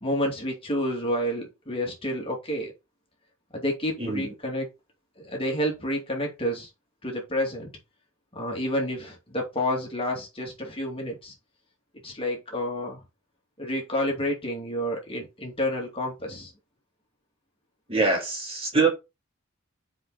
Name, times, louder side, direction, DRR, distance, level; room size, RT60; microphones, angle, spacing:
voice 1, 0.0-2.7 3.5-4.7 5.2-6.7 7.0-7.7 8.3-11.3 12.0-13.0 13.6-16.5, equal, 25° left, 2.5 m, -29 dB
voice 2, 4.0-4.3 17.9-18.9, right 3 dB, 25° right, 2.7 m, -24 dB
7.6 x 4.9 x 4.0 m
head